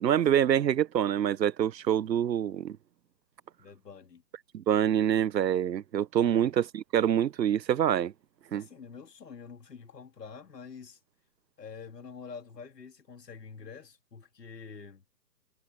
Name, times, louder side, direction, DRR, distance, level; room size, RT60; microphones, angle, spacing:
voice 1, 0.0-2.8 4.5-8.1 8.5-8.6, right 10 dB, 85° right, 0.7 m, -26 dB
voice 2, 3.6-4.2 6.2-6.5 8.5-11.0 11.6-15.0, left 5 dB, 75° left, 3.2 m, -47 dB
hypercardioid pair, 155°, 49 cm